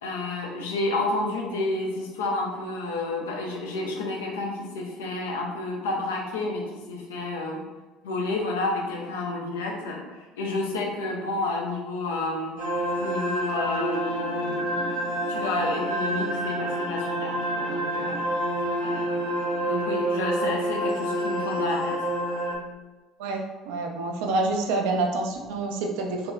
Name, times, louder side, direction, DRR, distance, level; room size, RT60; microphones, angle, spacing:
voice 1, 0.0-7.6 8.0-12.6 13.0-18.3 18.8-19.3 19.7-21.9, left 2 dB, 75° left, -1 dB, 0.6 m, -30 dB
sound 1, 12.6-22.6, right 1 dB, 90° left, 1.0 m, -28 dB
voice 2, 23.7-26.3, right 3 dB, 65° right, 2 dB, 0.5 m, -27 dB
3.6 x 2.9 x 2.3 m, 1.2 s
figure-of-eight pair, 60°, 0 cm